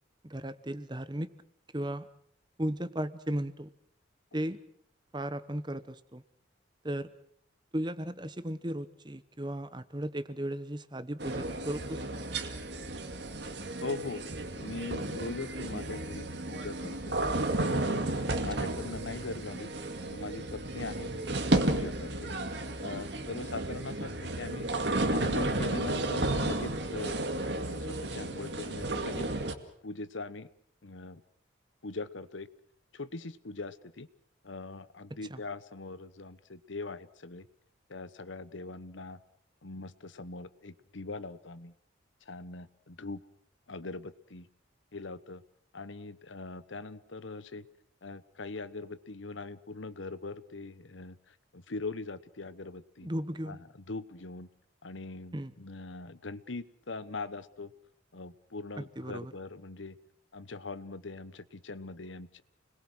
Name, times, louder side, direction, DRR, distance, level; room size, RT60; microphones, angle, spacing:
voice 1, 0.2-1.3 1.7-2.1 2.6-3.7 4.3-4.6 5.1-6.2 6.8-7.1 7.7-12.3 18.5-18.7 35.3-35.4 53.0-53.6 55.3-55.5 58.8-59.3, right 1 dB, 20° right, 14 dB, 1.0 m, -36 dB
sound 1, 11.2-29.5, right 2 dB, 60° right, 2.2 m, -33 dB
voice 2, 13.8-14.2 14.5-17.2 17.7-18.1 18.4-19.7 20.1-21.1 21.5-22.3 22.8-24.7 25.1-29.3 29.8-30.5 30.8-31.2 31.8-32.5 32.9-34.1 34.4-37.4 37.9-39.2 39.6-41.7 42.3-43.2 43.7-44.5 44.9-45.4 45.7-47.6 48.0-51.2 51.5-53.1 53.5-53.6 53.9-54.5 54.8-57.7 58.1-59.9 60.3-62.4, left 3 dB, 75° left, 15 dB, 1.1 m, -41 dB
29.5 x 21.5 x 6.2 m, 0.64 s
head